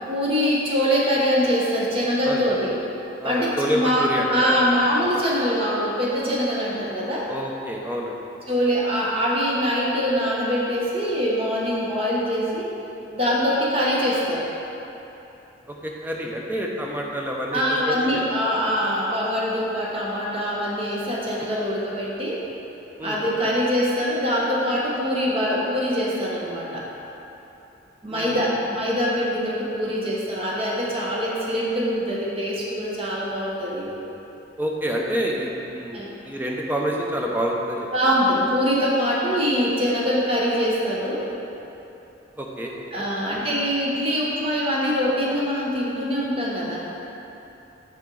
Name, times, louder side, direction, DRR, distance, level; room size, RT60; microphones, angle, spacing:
voice 1, 0.1-2.7 3.2-7.3 8.5-12.7 13.1-14.5 17.5-22.4 23.0-26.9 28.0-33.9 35.9-36.1 37.9-41.3 42.9-46.8, equal, 30° right, -4 dB, 0.9 m, -23 dB
voice 2, 2.2-2.6 3.2-4.7 7.3-8.2 15.7-18.2 23.0-23.2 28.1-28.5 34.6-37.9 42.4-43.0, equal, 10° right, -1 dB, 0.5 m, -28 dB
5.8 x 5.8 x 3.9 m, 3.0 s
head